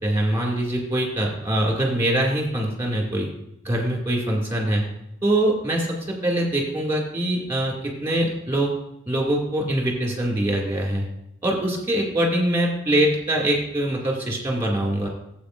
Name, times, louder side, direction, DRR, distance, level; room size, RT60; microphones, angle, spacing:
voice 1, 0.0-3.3 3.6-4.8 5.2-8.7 9.1-11.1 11.4-15.1, right 1 dB, 15° right, -1 dB, 2.3 m, -23 dB
14.0 x 8.0 x 2.6 m, 0.81 s
head